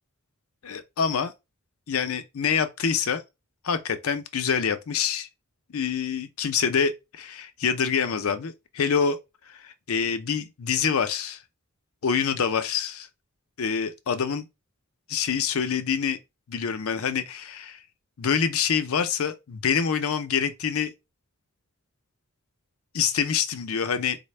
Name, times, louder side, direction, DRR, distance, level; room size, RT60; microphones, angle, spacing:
voice 1, 0.6-1.3 1.9-3.2 3.6-5.3 5.7-9.2 9.5-11.4 12.0-13.1 13.6-14.4 15.1-16.2 16.5-17.8 18.2-20.9 22.9-24.2, left 6 dB, 75° left, 0.5 m, -26 dB
4.1 x 2.1 x 3.2 m
head